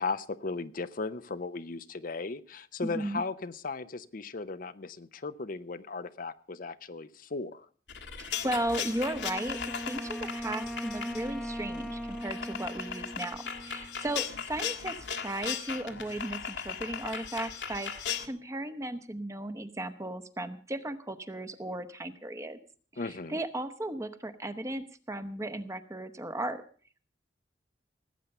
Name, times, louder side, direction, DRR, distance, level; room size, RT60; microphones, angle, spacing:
voice 1, 0.0-7.7 23.0-23.4, left 3 dB, 50° left, 0.7 m, -36 dB
voice 2, 2.8-3.2 8.2-17.9 18.2-22.6 22.9-26.6, right 1 dB, 15° right, 1.0 m, -36 dB
sound 1, 7.9-18.3, left 7 dB, 80° left, 1.9 m, -38 dB
Wind instrument woodwind instrument, 8.8-14.3, equal, ahead, 0.6 m, -40 dB
18.5 x 8.4 x 6.7 m
head